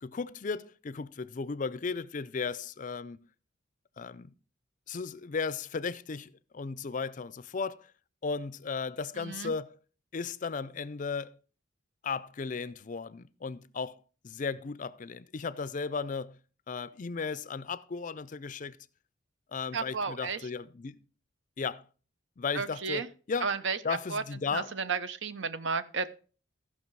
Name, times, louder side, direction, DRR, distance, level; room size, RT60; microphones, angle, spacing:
voice 1, 0.0-3.2 4.0-4.3 4.9-7.9 8.2-9.8 10.1-11.3 12.0-16.4 16.7-18.8 19.5-21.0 21.6-21.8 22.4-23.5 23.8-24.7, left 5 dB, 40° left, 0.4 m, -35 dB
voice 2, 9.2-9.5 19.7-20.4 22.5-23.1 23.4-24.2 24.5-26.1, right 5 dB, 70° right, 0.8 m, -33 dB
14.5 x 5.9 x 4.6 m
head